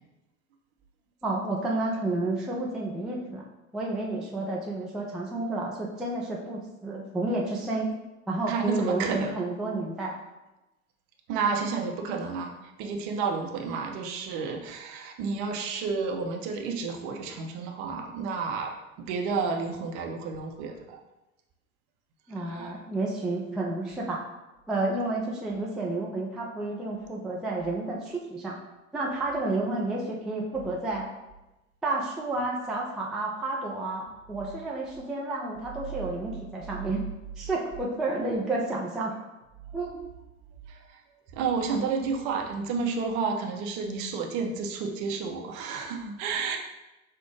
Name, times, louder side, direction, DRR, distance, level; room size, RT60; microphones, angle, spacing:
voice 1, 1.2-3.5 3.7-7.9 8.3-10.1 22.3-24.2 24.7-28.6 28.9-31.1 31.8-37.0 37.4-39.1 39.7-40.0, right 2 dB, ahead, -3 dB, 0.3 m, -30 dB
voice 2, 8.5-9.3 11.3-18.7 19.0-21.0 22.4-22.8 40.7-41.0 41.3-46.6, right 5 dB, 45° right, 3 dB, 0.7 m, -31 dB
5.7 x 2.0 x 3.1 m, 1.0 s
figure-of-eight pair, 75°, 41 cm